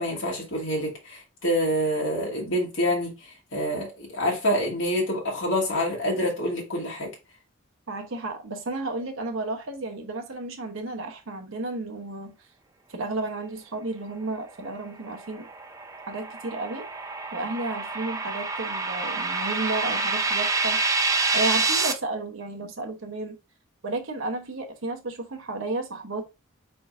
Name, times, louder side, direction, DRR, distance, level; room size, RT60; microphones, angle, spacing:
voice 1, 0.0-7.1, equal, 65° left, 1.4 m, -27 dB
voice 2, 7.9-12.4 12.9-15.5 16.1-16.9 17.3-20.8 21.3-23.4 23.8-26.2, right 2 dB, 65° right, 0.8 m, -32 dB
sound 1, 15.1-21.9, right 3 dB, 15° right, 0.5 m, -27 dB
4.7 x 4.3 x 2.5 m
head